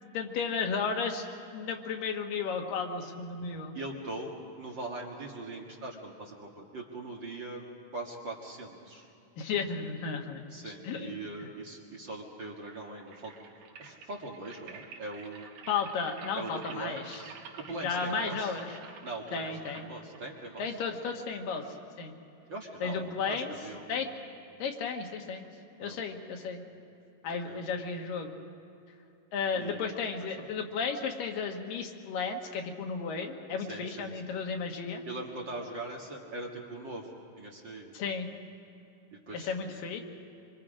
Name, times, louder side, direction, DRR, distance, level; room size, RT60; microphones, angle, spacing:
voice 1, 0.1-1.3 1.5-3.8 9.4-11.1 11.4-11.5 15.7-17.2 17.8-18.8 19.3-19.9 20.6-22.1 22.8-23.5 23.9-24.1 24.6-25.5 25.8-26.6 27.2-28.3 29.3-35.0 37.9-38.3 39.3-40.0, left 5 dB, 85° left, 3 dB, 3.2 m, -34 dB
voice 2, 3.7-7.6 7.9-9.1 10.5-13.3 13.8-15.5 16.4-17.3 17.7-18.6 19.0-20.8 22.5-24.2 25.8-26.0 27.3-27.6 29.6-29.9 30.4-30.5 33.7-34.4 35.1-37.9 39.1-39.5, right 2 dB, 40° right, -2 dB, 2.0 m, -41 dB
sound 1, 12.5-21.6, right 5 dB, 70° right, 2.9 m, -50 dB
25.0 x 25.0 x 5.1 m, 2.8 s
omnidirectional pair, 3.8 m